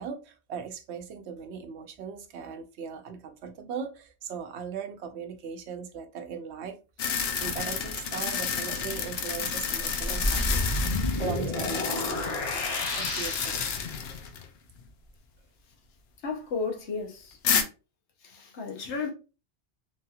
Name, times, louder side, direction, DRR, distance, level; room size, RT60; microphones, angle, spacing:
voice 1, 0.0-6.8 7.0-13.7, right 6 dB, 85° right, 0.9 m, -39 dB
sound 1, 7.0-14.5 14.8-14.9 17.4-17.6, left 6 dB, 70° left, 0.8 m, -31 dB
sound 2, 7.2-7.8 9.1-9.2 9.8-14.0, left 1 dB, 45° left, 0.9 m, -31 dB
voice 2, 16.2-17.4 18.2-19.1, left 4 dB, 90° left, 1.1 m, -33 dB
3.5 x 2.7 x 2.3 m
omnidirectional pair, 1.1 m